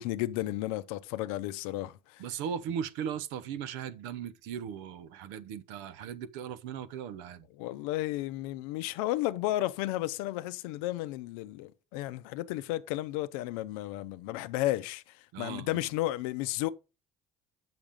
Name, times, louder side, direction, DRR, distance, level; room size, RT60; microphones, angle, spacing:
voice 1, 0.0-2.2 7.6-16.7, left 16 dB, 90° left, 0.5 m, -33 dB
voice 2, 2.2-7.5 15.3-15.9, right 8 dB, 85° right, 0.7 m, -38 dB
7.2 x 5.9 x 5.1 m
supercardioid pair, 75°, 18 cm